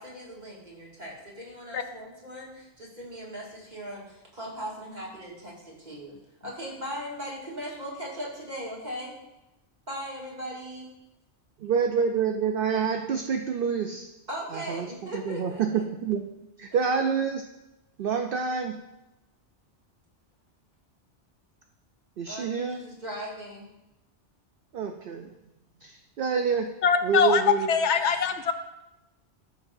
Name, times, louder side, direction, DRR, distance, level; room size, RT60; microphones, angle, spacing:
voice 1, 0.0-6.2 6.4-9.1 9.9-10.9 14.3-15.8 22.3-23.7, equal, 35° right, -5 dB, 2.3 m, -39 dB
voice 2, 11.6-14.1 14.5-14.9 15.1-16.3 16.6-17.4 18.0-18.8 22.2-22.8 24.7-25.3 25.8-26.7 27.0-27.7, right 6 dB, 60° right, 5 dB, 0.7 m, -27 dB
voice 3, 26.8-28.5, left 6 dB, 75° left, 8 dB, 0.9 m, -23 dB
14.0 x 6.2 x 2.6 m, 0.93 s
omnidirectional pair, 1.2 m